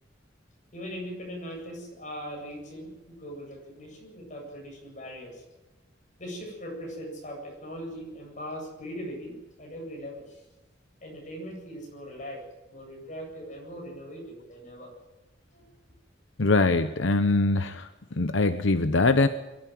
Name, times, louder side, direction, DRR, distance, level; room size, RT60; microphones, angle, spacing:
voice 1, 0.7-5.4 6.2-10.4 11.0-14.9 15.5-15.7, equal, 40° left, 0 dB, 7.9 m, -40 dB
voice 2, 16.4-17.9 18.2-19.3, left 3 dB, 75° left, 9 dB, 0.9 m, -22 dB
22.5 x 13.0 x 9.4 m, 1.1 s
head